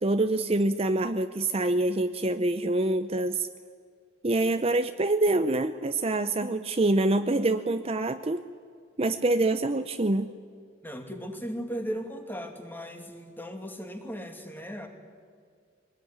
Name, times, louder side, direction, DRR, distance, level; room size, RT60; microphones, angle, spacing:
voice 1, 0.0-3.5 4.2-8.4 9.0-10.3, right 2 dB, 30° right, 10 dB, 0.6 m, -25 dB
voice 2, 10.8-14.9, equal, 10° left, 5 dB, 2.3 m, -37 dB
23.0 x 19.5 x 10.0 m, 2.1 s
head